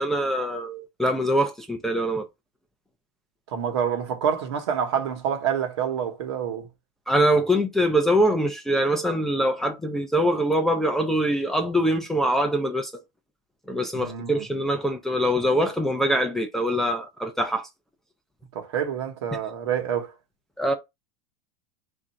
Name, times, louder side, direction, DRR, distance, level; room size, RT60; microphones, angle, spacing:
voice 1, 0.0-2.3 7.1-13.0 13.7-17.7 20.6-20.7, equal, 5° left, 0.3 m, -23 dB
voice 2, 3.5-6.7 13.9-14.5 18.5-20.1, right 8 dB, 75° right, 1.1 m, -27 dB
3.6 x 2.5 x 4.3 m
supercardioid pair, 170°, 14 cm